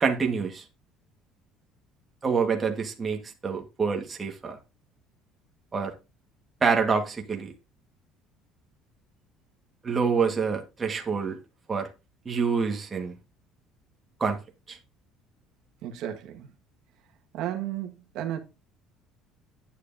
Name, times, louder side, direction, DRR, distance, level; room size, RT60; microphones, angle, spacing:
voice 1, 0.0-0.6 2.2-4.6 5.7-5.9 6.6-7.5 9.8-11.4 11.7-11.9 12.2-13.1 14.2-14.4 14.7-14.8, right 5 dB, 20° right, 1.5 m, -26 dB
voice 2, 15.8-16.5 17.3-18.4, right 11 dB, 65° right, 1.6 m, -33 dB
9.6 x 9.2 x 2.7 m
cardioid pair, 150°, 0 cm